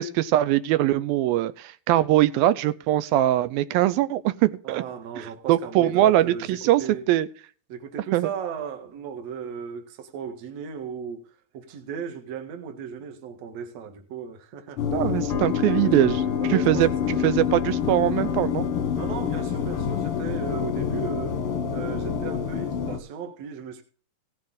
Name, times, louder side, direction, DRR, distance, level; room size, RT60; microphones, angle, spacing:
voice 1, 0.0-4.8 5.2-6.8 7.1-7.3 8.1-8.3 14.9-16.2 16.5-18.7, right 14 dB, 80° right, 2.5 m, -22 dB
voice 2, 4.6-7.0 7.7-14.8 15.6-17.1 19.0-21.4 21.7-23.8, right 7 dB, 50° right, 2.5 m, -36 dB
sound 1, 14.8-23.0, left 8 dB, 60° left, 1.5 m, -27 dB
17.0 x 8.6 x 3.8 m
omnidirectional pair, 4.3 m